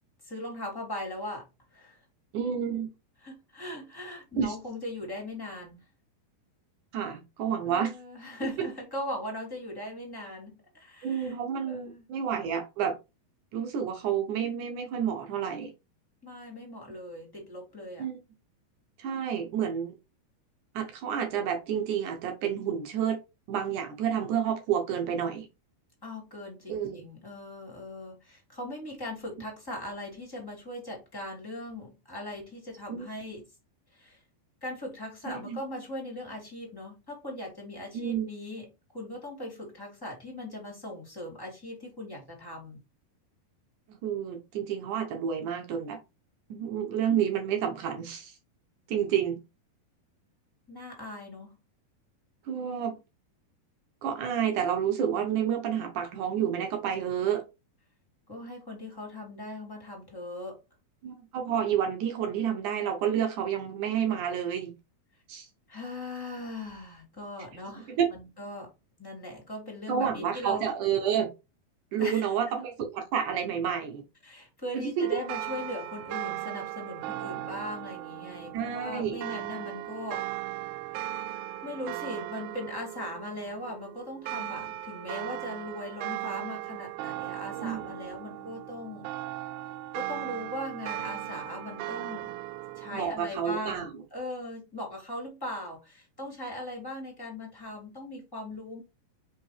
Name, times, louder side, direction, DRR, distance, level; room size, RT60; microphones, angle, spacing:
voice 1, 0.2-1.4 1.7-2.0 3.2-5.8 7.7-11.4 11.6-12.0 16.2-18.1 26.0-33.4 33.9-34.2 34.6-38.7 38.9-42.8 50.7-51.6 58.3-60.6 65.7-68.7 69.0-70.7 72.0-72.6 74.2-81.2 81.6-89.1 89.9-92.3 92.8-93.9 94.1-98.8, left 1 dB, 5° left, 2.0 m, -39 dB
voice 2, 2.3-2.9 4.4-4.6 6.9-8.0 11.0-13.0 13.5-15.7 18.0-18.2 19.0-20.0 20.7-23.2 23.5-25.5 26.7-27.0 32.9-33.1 35.3-35.6 37.9-38.3 43.9-46.0 46.5-48.4 48.9-49.4 52.5-53.0 54.0-57.4 61.0-64.8 65.3-65.5 67.9-68.1 69.9-71.3 71.9-74.0 74.7-75.1 78.5-79.2 87.5-88.0 92.9-93.9, right 8 dB, 70° right, 2.0 m, -29 dB
sound 1, 75.0-93.1, right 14 dB, 90° right, 2.5 m, -38 dB
5.5 x 5.2 x 3.3 m
omnidirectional pair, 4.4 m